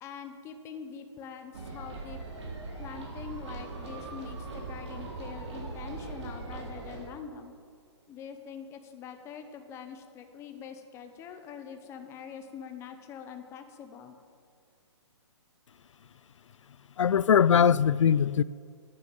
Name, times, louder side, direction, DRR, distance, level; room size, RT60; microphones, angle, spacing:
voice 1, 0.0-2.2 2.8-7.5 8.1-14.1, left 7 dB, 15° left, 1.0 m, -44 dB
sound 1, 1.5-7.0, right 3 dB, 70° right, 3.8 m, -40 dB
voice 2, 17.0-18.4, left 8 dB, 85° left, 0.4 m, -21 dB
11.0 x 9.6 x 7.3 m
hypercardioid pair, 150°, 15 cm